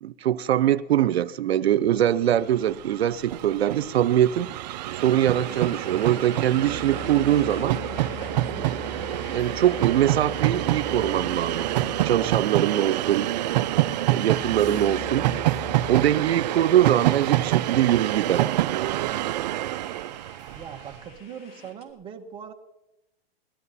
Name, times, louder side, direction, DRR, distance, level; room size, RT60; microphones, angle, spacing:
voice 1, 0.0-4.5 5.0-7.8 8.6-8.9 9.3-11.7 12.0-13.3 14.1-15.3 15.9-18.6, right 11 dB, 90° right, 0.7 m, -23 dB
Train, 2.3-2.4 2.6-21.0, right 15 dB, 45° right, 0.4 m, -27 dB
sound 1, 4.5-4.6 6.1-16.1, left 6 dB, 90° left, 2.7 m, -41 dB
sound 2, 4.9-21.9, left 4 dB, 70° left, 3.4 m, -49 dB
voice 2, 20.5-22.5, right 8 dB, 15° right, 1.1 m, -40 dB
19.5 x 12.5 x 4.2 m
hypercardioid pair, 150°, 30 cm